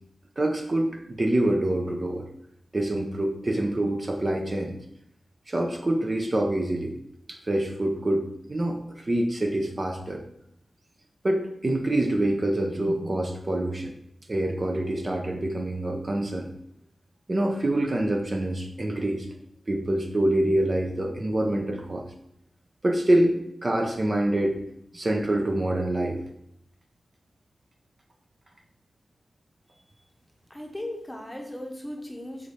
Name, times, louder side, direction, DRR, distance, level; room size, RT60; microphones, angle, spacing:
voice 1, 0.4-2.2 2.7-4.8 5.5-6.9 7.3-10.2 11.2-13.9 14.3-16.5 17.3-19.3 19.7-22.0 22.8-24.6 24.9-26.2, right 1 dB, 35° right, 2 dB, 0.7 m, -26 dB
voice 2, 30.5-32.5, left 1 dB, 10° left, 2 dB, 1.0 m, -37 dB
4.8 x 4.1 x 4.9 m, 0.75 s
wide cardioid pair, 75°, 0 cm